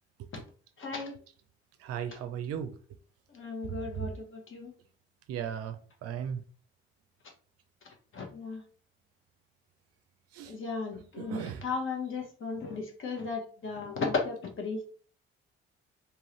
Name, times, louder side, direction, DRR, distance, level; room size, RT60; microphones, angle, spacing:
voice 1, 0.8-1.1 3.3-4.7 8.1-8.6 10.4-14.8, left 4 dB, 45° left, 1.2 m, -35 dB
voice 2, 1.8-2.8 3.6-4.1 5.3-6.4 10.3-10.6 11.2-11.6, right 8 dB, 55° right, 0.5 m, -37 dB
3.7 x 2.7 x 3.1 m
figure-of-eight pair, 45°, 29 cm